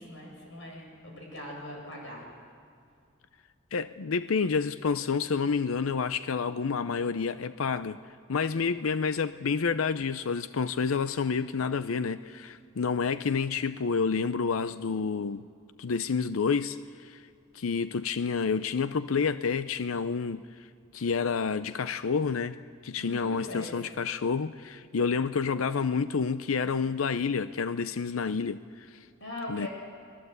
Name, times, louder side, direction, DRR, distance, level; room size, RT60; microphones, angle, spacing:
voice 1, 0.0-2.2 23.0-23.7 29.2-29.7, left 1 dB, 65° left, 0 dB, 7.8 m, -41 dB
voice 2, 3.7-8.0 8.3-15.4 15.8-17.2 17.5-20.4 20.9-22.6 22.8-29.1 29.5-29.7, left 5 dB, 85° left, 13 dB, 0.6 m, -29 dB
30.0 x 20.0 x 8.1 m, 2.4 s
head